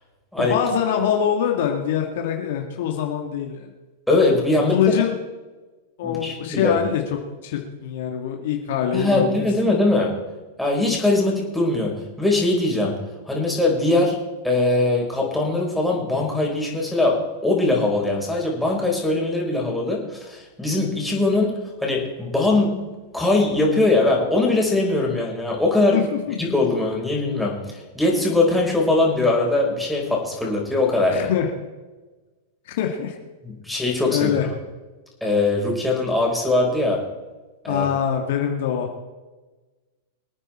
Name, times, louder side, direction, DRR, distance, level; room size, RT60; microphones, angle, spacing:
voice 1, 0.4-3.7 4.7-5.2 6.0-9.3 25.9-26.4 31.1-31.5 32.7-33.2 34.1-34.5 37.7-39.1, left 9 dB, 60° left, 3 dB, 2.1 m, -24 dB
voice 2, 4.1-4.8 6.0-6.8 8.9-10.2 10.6-13.0 13.3-14.2 14.4-22.8 23.1-26.0 26.4-31.3 33.4-34.3 35.2-37.0 37.6-37.9, left 2 dB, 5° left, -2 dB, 4.7 m, -21 dB
24.5 x 9.2 x 4.4 m, 1.2 s
hypercardioid pair, 105°, 0 cm